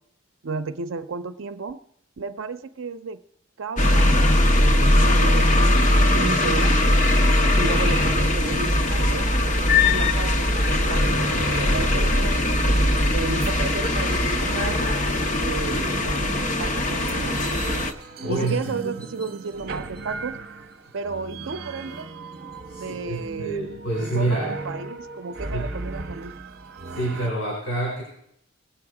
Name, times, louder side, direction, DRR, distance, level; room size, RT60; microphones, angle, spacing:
voice 1, 0.4-1.8 2.2-3.2 3.6-4.2 4.9-6.8 7.6-9.3 9.8-10.5 10.8-12.4 13.1-14.8 15.4-16.2 16.6-17.6 18.3-20.4 20.9-22.1 22.7-23.7 24.0-26.3, right 4 dB, 75° right, 11 dB, 0.5 m, -33 dB
sound 1, 3.8-17.9, left 1 dB, 40° left, 0.9 m, -20 dB
sound 2, 11.2-27.3, right 3 dB, 50° right, 0.9 m, -38 dB
voice 2, 18.2-18.6 22.7-24.5 25.5-25.7 26.9-28.0, right 2 dB, 70° left, -4 dB, 5.3 m, -27 dB
20.5 x 8.0 x 4.8 m, 0.74 s
head